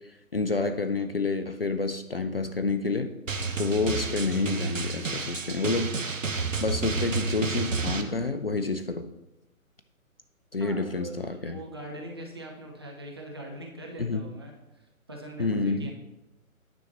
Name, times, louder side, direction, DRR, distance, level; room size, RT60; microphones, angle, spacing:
voice 1, 0.0-3.2 3.6-6.0 6.6-9.1 10.5-11.6 14.0-14.2 15.4-15.9, left 3 dB, 45° left, 9 dB, 0.5 m, -29 dB
Drum, 3.3-8.0, right 4 dB, 60° right, 1.1 m, -30 dB
voice 2, 10.6-14.5 15.1-15.9, right 1 dB, 20° right, 0 dB, 0.7 m, -41 dB
9.6 x 6.4 x 4.1 m, 0.98 s
figure-of-eight pair, 145°, 43 cm